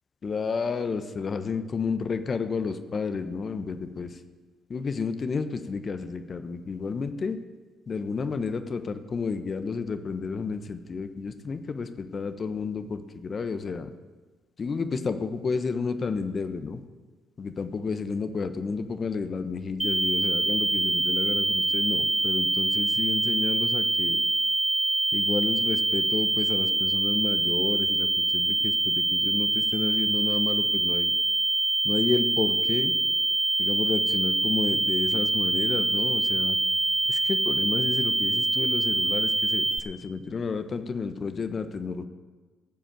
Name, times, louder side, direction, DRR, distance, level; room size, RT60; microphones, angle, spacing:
voice 1, 0.2-4.2 4.7-7.4 7.9-13.9 14.6-16.8 17.4-24.2 25.1-31.1 31.8-32.9 33.6-36.6 37.1-42.1, left 4 dB, 45° left, 10 dB, 1.2 m, -31 dB
sound 1, 19.8-39.8, right 2 dB, 15° right, 1.1 m, -25 dB
17.5 x 7.6 x 6.9 m, 1.4 s
hypercardioid pair, 55°, 0 cm